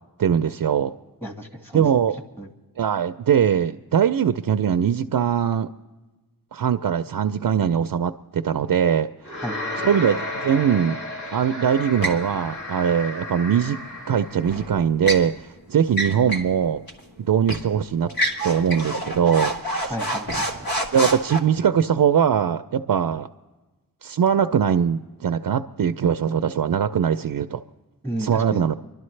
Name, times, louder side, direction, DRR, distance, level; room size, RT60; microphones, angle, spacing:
voice 1, 0.2-0.9 1.7-2.1 2.8-5.7 6.5-9.1 9.8-11.0 11.3-13.8 14.1-16.8 17.2-18.1 18.4-20.0 20.9-23.3 24.0-27.6 28.2-28.8, right 8 dB, 65° right, 9 dB, 0.5 m, -21 dB
voice 2, 1.2-1.8 2.4-2.5 9.4-9.6 19.9-20.5 28.0-28.7, right 1 dB, 5° left, 4 dB, 1.7 m, -32 dB
sound 1, 9.2-14.6, left 2 dB, 55° left, 2.4 m, -33 dB
sound 2, 12.0-12.3 14.5-15.3 15.9-16.5 16.9-17.0 17.5-17.7 18.1-21.4, right 1 dB, 75° left, 1.5 m, -27 dB
29.0 x 12.0 x 3.2 m, 1.2 s
wide cardioid pair, 55°, 36 cm